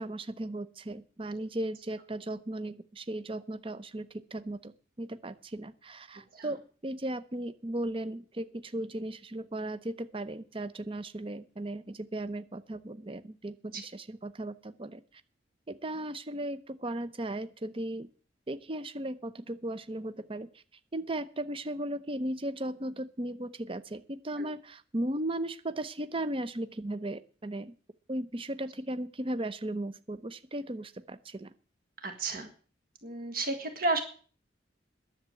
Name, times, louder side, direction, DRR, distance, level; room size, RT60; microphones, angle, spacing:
voice 1, 0.0-4.7 5.0-15.0 15.7-18.1 18.5-20.5 20.9-27.7 28.1-31.5, right 1 dB, 30° right, 13 dB, 0.7 m, -36 dB
voice 2, 32.0-32.5 33.0-34.0, right 2 dB, 50° right, 7 dB, 1.8 m, -32 dB
10.5 x 7.4 x 9.0 m, 0.41 s
head